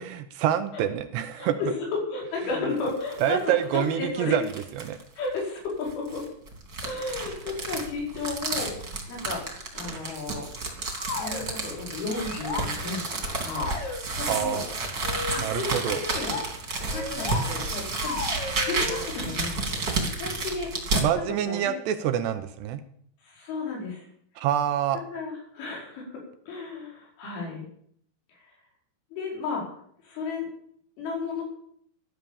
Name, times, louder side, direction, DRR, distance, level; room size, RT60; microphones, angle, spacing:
voice 1, 0.3-1.6 3.2-4.4 4.8-5.0 14.3-14.6 15.4-16.0 21.0-22.8 24.4-25.0, right 10 dB, 75° right, 10 dB, 2.7 m, -26 dB
voice 2, 1.4-4.3 5.2-6.2 6.8-9.4 9.7-10.5 11.1-13.9 14.2-14.6 15.3-16.4 16.8-18.3 18.7-19.8 20.2-20.7 21.5-21.7 23.2-24.1 25.1-27.7 29.1-29.7 30.0-30.5 31.0-31.4, left 3 dB, 85° left, -1 dB, 7.5 m, -33 dB
sound 1, 2.8-3.3 3.7-3.8 4.4-5.0 5.8-21.1, right 3 dB, 30° right, 2.8 m, -31 dB
sound 2, 10.9-11.5 12.1-12.7 13.5-14.0 15.0-15.5 16.0-16.5 16.9-17.5 17.9-18.7, left 4 dB, 40° left, 2.6 m, -34 dB
15.5 x 11.5 x 7.2 m, 0.66 s
omnidirectional pair, 5.4 m